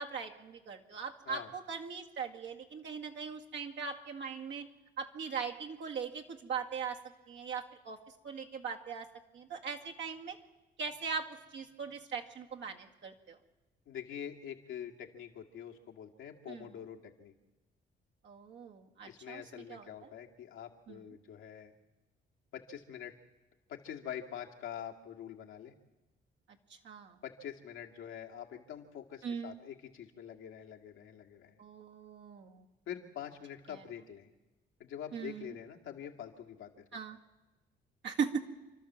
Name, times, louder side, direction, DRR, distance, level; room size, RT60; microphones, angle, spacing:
voice 1, 0.0-4.7 5.0-7.0 7.3-8.0 8.2-9.1 9.3-10.4 10.8-11.3 11.5-13.4 16.5-16.7 18.2-19.4 19.7-19.9 20.9-21.0 26.8-27.2 29.2-29.6 31.6-32.6 35.1-35.5 36.9-37.2 38.0-38.4, right 6 dB, 65° right, 2 dB, 2.1 m, -39 dB
voice 2, 13.9-17.3 19.1-21.7 22.5-23.1 23.7-25.7 27.2-31.6 32.9-34.3 34.8-36.8, left 9 dB, 85° left, 1 dB, 2.1 m, -45 dB
28.5 x 12.5 x 7.4 m, 1.1 s
cardioid pair, 90°, 20 cm